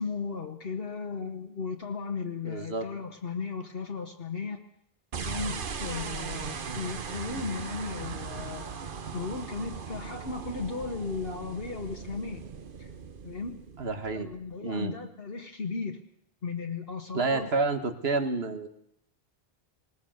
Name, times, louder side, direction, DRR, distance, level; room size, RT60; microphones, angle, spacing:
voice 1, 0.0-4.6 5.2-8.6 9.1-12.4 12.8-12.9 13.2-13.6 14.1-16.0 16.4-17.5, left 4 dB, 65° left, 3 dB, 1.5 m, -36 dB
voice 2, 2.5-2.9 13.8-14.3 14.6-14.9 17.1-18.7, right 3 dB, 75° right, 8 dB, 1.8 m, -29 dB
sound 1, 5.1-14.5, right 5 dB, 55° right, 1.2 m, -38 dB
20.0 x 19.0 x 7.9 m, 0.73 s
omnidirectional pair, 1.1 m